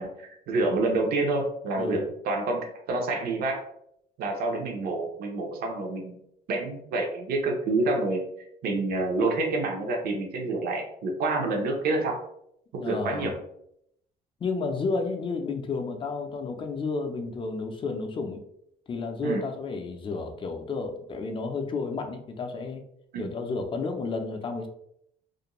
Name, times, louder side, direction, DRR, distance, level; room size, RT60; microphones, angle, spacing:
voice 1, 0.0-3.6 4.2-6.1 6.5-8.2 8.6-12.2 12.7-13.3 19.2-19.4 23.1-23.3, right 2 dB, 65° right, 2 dB, 0.7 m, -28 dB
voice 2, 12.8-13.3 14.4-18.4 18.9-22.8 23.2-24.7, left 4 dB, 30° left, 5 dB, 0.4 m, -31 dB
2.5 x 2.1 x 2.9 m, 0.74 s
cardioid pair, 110°, 17 cm